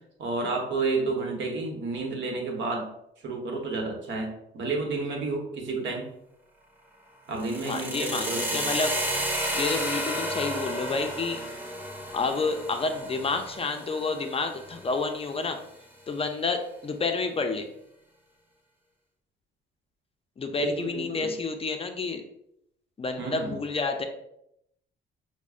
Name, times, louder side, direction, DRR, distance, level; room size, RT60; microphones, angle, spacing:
voice 1, 0.2-2.9 3.2-6.1 7.3-8.7 20.6-21.3 23.2-23.6, right 3 dB, 70° right, 1 dB, 1.0 m, -31 dB
sound 1, 7.4-15.4, equal, 10° right, 0.7 m, -32 dB
voice 2, 7.6-8.9 9.5-11.4 12.1-15.6 16.1-17.7 20.4-22.2 23.0-24.0, left 3 dB, 30° left, 5 dB, 0.4 m, -29 dB
6.0 x 2.1 x 2.4 m, 0.76 s
cardioid pair, 90°, 20 cm